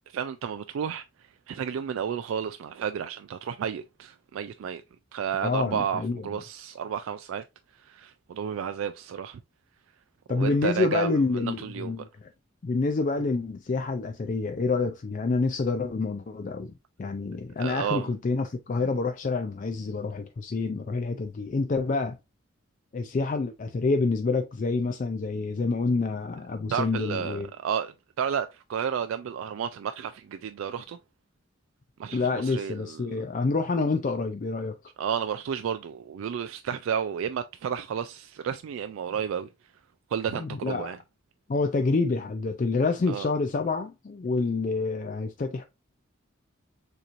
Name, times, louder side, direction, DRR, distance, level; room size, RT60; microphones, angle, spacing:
voice 1, 0.1-4.8 5.1-7.4 7.8-9.4 10.3-12.1 17.6-18.1 26.7-31.0 32.0-33.2 35.0-39.5 40.1-41.0 43.1-43.3, right 8 dB, 75° right, 0.3 m, -32 dB
voice 2, 5.4-6.3 10.3-12.3 12.6-16.7 17.0-22.2 22.9-27.5 32.1-34.8 40.3-40.9 41.5-45.6, left 3 dB, 40° left, 0.3 m, -27 dB
6.7 x 3.0 x 2.5 m
head